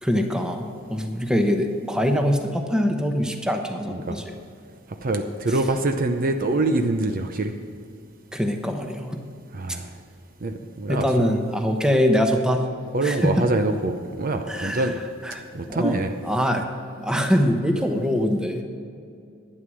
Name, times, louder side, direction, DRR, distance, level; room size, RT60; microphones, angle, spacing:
voice 1, 0.0-4.3 8.3-9.2 10.9-12.6 13.0-13.5 14.5-14.9 15.2-15.4 15.7-16.6 17.0-18.6, equal, 5° right, 4 dB, 1.0 m, -23 dB
voice 2, 3.9-4.2 5.0-7.5 9.5-9.9 10.4-11.1 12.9-14.9 15.5-16.1, right 2 dB, 45° right, 6 dB, 0.6 m, -25 dB
11.5 x 9.4 x 6.4 m, 2.4 s
head